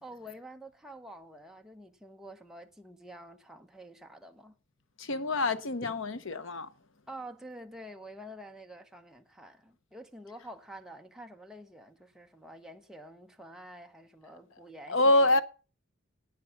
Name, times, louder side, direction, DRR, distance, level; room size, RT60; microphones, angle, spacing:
voice 1, 0.0-4.6 5.8-5.9 7.1-15.4, right 1 dB, 5° right, 0.9 m, -48 dB
voice 2, 5.0-6.7 14.9-15.4, left 2 dB, 75° left, 0.9 m, -26 dB
10.5 x 9.2 x 7.0 m
head